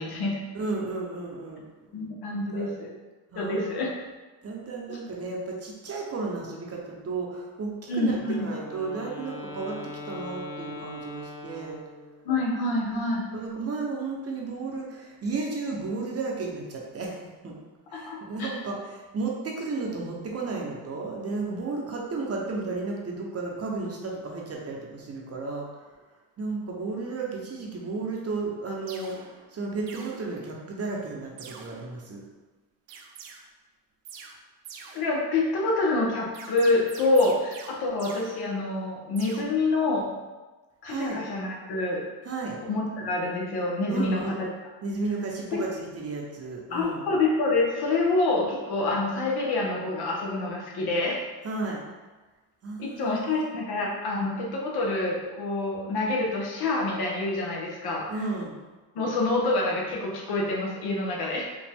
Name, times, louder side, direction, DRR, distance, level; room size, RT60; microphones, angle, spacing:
voice 1, 0.0-0.4 1.9-2.9 3.4-3.9 4.9-5.0 7.9-8.5 12.2-13.2 18.1-18.5 34.9-40.1 40.8-42.0 42.7-44.3 45.5-45.6 46.7-51.2 52.8-58.1 58.9-61.5, left 2 dB, 60° left, -2 dB, 1.2 m, -27 dB
voice 2, 0.5-1.6 2.5-2.9 3.3-3.9 4.4-8.2 8.4-11.8 12.9-17.2 17.4-17.6 17.9-25.8 26.4-29.2 29.5-32.2 40.9-41.2 42.2-42.6 43.9-44.4 44.8-47.0 51.4-51.8 52.6-53.4 58.1-58.6, right 3 dB, 35° right, -1 dB, 0.9 m, -33 dB
Wind instrument woodwind instrument, 8.2-12.3, left 2 dB, 45° left, 0.8 m, -40 dB
sound 1, 28.2-28.3 28.9-29.5 29.9-30.7 31.4-32.2 32.9-33.4 34.0-34.4 34.6-35.5 36.3-38.9 39.2-39.4, right 6 dB, 85° right, 0.7 m, -46 dB
5.1 x 2.4 x 3.5 m, 1.2 s
cardioid pair, 95°, 42 cm